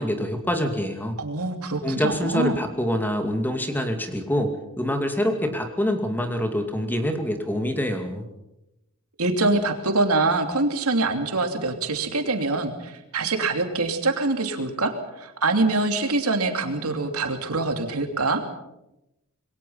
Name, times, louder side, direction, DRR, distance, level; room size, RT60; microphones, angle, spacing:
voice 1, 0.0-1.2 1.8-8.3, equal, 10° left, 6 dB, 2.4 m, -26 dB
voice 2, 1.2-2.6 9.2-18.4, right 3 dB, 80° right, 5 dB, 3.0 m, -24 dB
26.5 x 22.0 x 5.7 m, 0.89 s
head